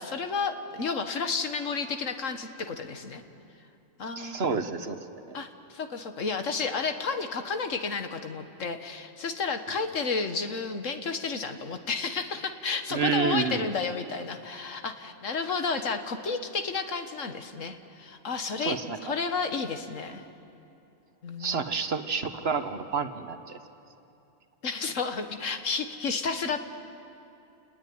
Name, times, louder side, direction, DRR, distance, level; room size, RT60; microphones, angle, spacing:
voice 1, 0.0-3.2 4.0-4.4 5.3-20.2 21.2-21.6 24.6-26.6, left 4 dB, 75° left, 7 dB, 1.8 m, -31 dB
voice 2, 4.2-5.0 5.3-5.4 12.9-13.6 18.6-19.1 21.4-23.6, right 5 dB, 55° right, 9 dB, 1.4 m, -29 dB
29.0 x 20.0 x 9.5 m, 2.7 s
omnidirectional pair, 1.3 m